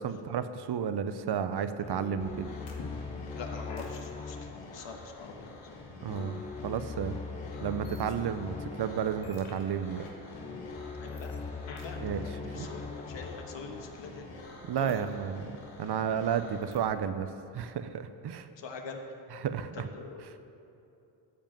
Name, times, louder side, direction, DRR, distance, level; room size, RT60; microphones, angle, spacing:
voice 1, 0.0-2.5 6.0-7.2 7.6-10.0 12.0-12.2 12.5-12.7 14.7-15.5 15.8-17.3 17.5-18.5 19.3-19.9, right 8 dB, 55° right, 11 dB, 0.7 m, -32 dB
sound 1, 1.8-14.9, left 4 dB, 15° left, 0.4 m, -42 dB
sound 2, 2.2-17.0, left 2 dB, 90° left, 1.7 m, -47 dB
voice 2, 3.3-5.5 11.0-11.3 11.7-14.3 14.7-15.1 18.6-19.0 19.7-20.4, left 4 dB, 60° left, 3 dB, 1.4 m, -44 dB
12.5 x 5.2 x 7.4 m, 2.7 s
cardioid pair, 65°, 49 cm